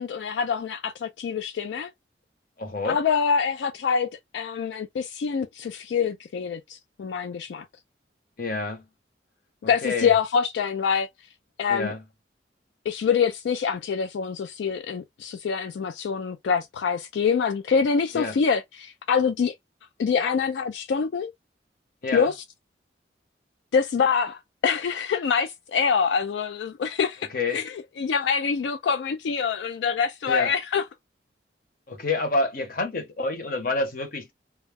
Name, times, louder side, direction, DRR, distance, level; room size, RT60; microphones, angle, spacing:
voice 1, 0.0-1.9 2.8-4.1 4.3-7.7 9.7-11.1 11.6-11.9 12.9-19.5 20.0-21.3 22.1-22.3 23.7-30.9, left 6 dB, 85° left, 0.3 m, -25 dB
voice 2, 2.6-3.0 8.4-8.8 9.6-10.1 11.7-12.0 18.1-18.4 22.0-22.3 27.3-27.6 30.3-30.5 31.9-34.3, left 3 dB, 50° left, 0.8 m, -28 dB
2.3 x 2.0 x 3.3 m
head